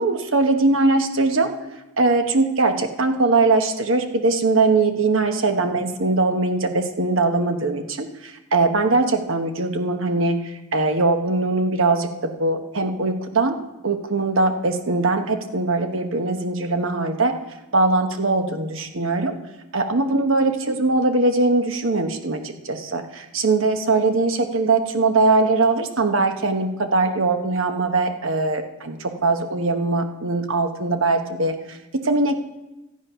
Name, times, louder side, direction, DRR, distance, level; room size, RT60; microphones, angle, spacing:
voice 1, 0.0-1.5 2.0-13.6 13.8-17.3 17.7-19.3 19.7-32.4, right 3 dB, 65° right, 6 dB, 1.1 m, -21 dB
14.0 x 8.5 x 5.6 m, 1.0 s
head